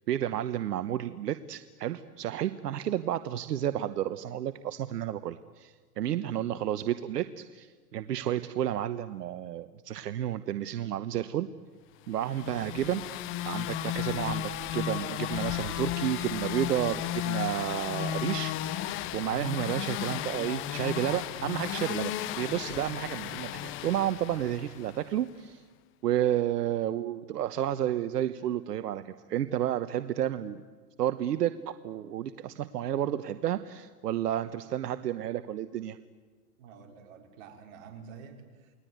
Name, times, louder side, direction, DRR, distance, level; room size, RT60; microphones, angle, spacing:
voice 1, 0.1-11.5 12.1-13.0 13.4-25.6 26.0-30.6 31.0-36.0, right 11 dB, 80° right, 12 dB, 1.1 m, -31 dB
sound 1, 12.2-25.1, left 12 dB, 25° left, 1.0 m, -34 dB
voice 2, 36.6-38.8, right 6 dB, 45° right, 3 dB, 4.8 m, -49 dB
29.5 x 20.0 x 9.4 m, 1.4 s
hypercardioid pair, 140°, 48 cm